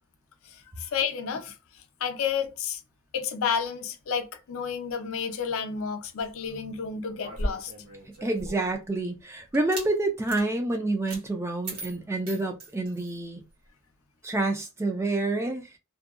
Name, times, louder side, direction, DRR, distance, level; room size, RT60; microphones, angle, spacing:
voice 1, 0.8-1.5 2.0-2.8 3.1-7.7, left 6 dB, 70° left, 0.5 m, -30 dB
sound 1, 7.2-8.8 9.5-9.9 10.3-10.4 11.1-11.2 11.6-13.2, right 1 dB, 85° right, 1.2 m, -36 dB
voice 2, 8.2-13.4 14.2-15.7, right 2 dB, 10° right, 0.3 m, -28 dB
2.6 x 2.2 x 2.3 m
head